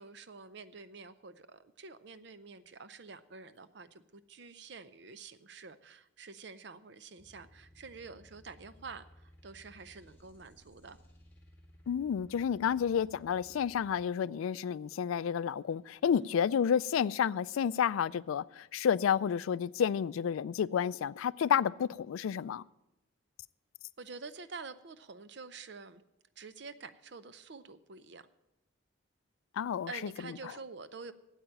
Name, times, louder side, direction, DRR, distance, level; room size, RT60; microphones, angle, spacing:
voice 1, 0.0-11.0 16.2-16.3 24.0-26.0 26.4-28.3 29.9-31.1, right 4 dB, 55° right, 0.6 m, -48 dB
sound 1, 7.2-14.0, equal, 10° left, 1.8 m, -59 dB
voice 2, 11.9-22.6 29.6-29.9, left 8 dB, 85° left, 0.3 m, -30 dB
8.7 x 8.1 x 8.9 m
head